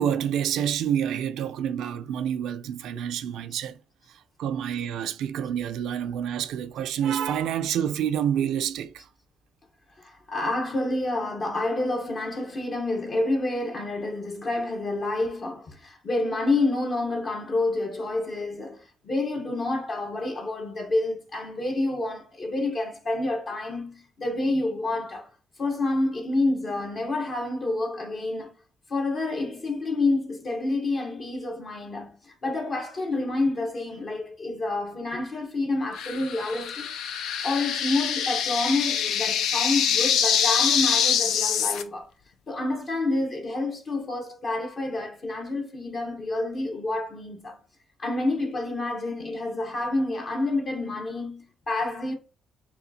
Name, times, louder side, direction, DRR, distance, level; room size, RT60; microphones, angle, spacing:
voice 1, 0.0-3.7 4.4-9.1, right 9 dB, 85° right, 0.4 m, -28 dB
voice 2, 10.0-25.3 25.6-28.5 28.9-36.9 37.4-42.1 42.5-47.6 48.0-52.1, left 2 dB, 50° left, 1.0 m, -28 dB
sound 1, 36.0-41.8, left 8 dB, 80° left, 0.5 m, -25 dB
7.0 x 2.4 x 2.7 m
cardioid pair, 90°, 0 cm